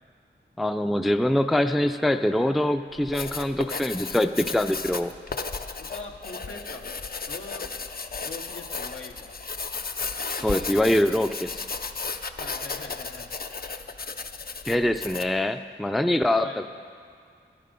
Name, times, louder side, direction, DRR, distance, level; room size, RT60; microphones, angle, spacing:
voice 1, 0.6-5.1 10.4-11.7 14.6-16.7, left 1 dB, ahead, 9 dB, 0.4 m, -24 dB
Writing, 2.9-15.4, left 4 dB, 50° left, 0.5 m, -34 dB
voice 2, 5.8-7.7 8.2-9.3 12.4-13.3 16.4-16.7, left 3 dB, 80° left, 1 dB, 1.1 m, -42 dB
12.5 x 11.0 x 5.2 m, 2.2 s
wide cardioid pair, 60°, 20 cm